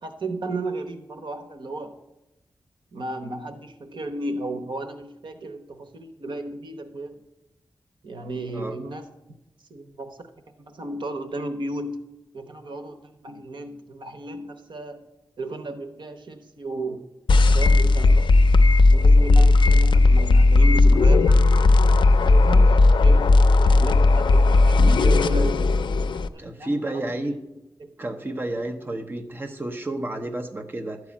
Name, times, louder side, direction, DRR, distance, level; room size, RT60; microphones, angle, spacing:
voice 1, 0.0-1.9 2.9-7.2 8.0-9.0 9.7-10.2 10.7-12.0 12.3-15.0 15.4-17.0 17.5-18.4 18.9-21.4 22.1-25.6 26.1-27.0 27.8-27.9, right 2 dB, 80° right, 6 dB, 1.0 m, -34 dB
sound 1, 17.3-26.3, left 2 dB, 80° left, 0.4 m, -16 dB
voice 2, 26.4-27.3 28.0-31.0, right 1 dB, 25° right, 4 dB, 0.8 m, -30 dB
12.5 x 4.8 x 8.6 m, 0.96 s
wide cardioid pair, 130°, 8 cm